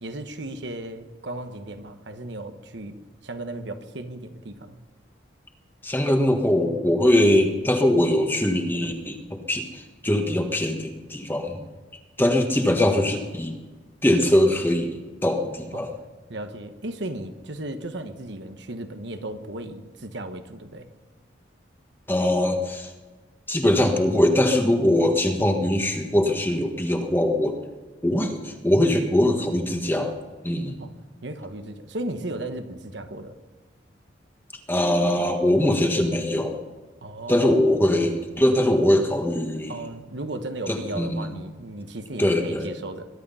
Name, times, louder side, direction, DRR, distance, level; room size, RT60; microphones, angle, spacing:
voice 1, 0.0-2.9 3.2-4.8 15.7-15.9 16.3-20.9 30.8-30.9 31.2-33.4 37.0-37.5 39.7-43.1, right 1 dB, 70° right, 7 dB, 1.2 m, -35 dB
voice 2, 5.8-11.6 12.2-13.5 14.0-14.9 15.2-15.9 22.1-22.9 23.5-27.5 28.0-30.1 30.4-30.8 34.7-36.6 37.3-39.8 40.7-41.3 42.2-42.7, left 1 dB, 10° left, 4 dB, 1.5 m, -22 dB
22.0 x 11.5 x 5.6 m, 1.3 s
head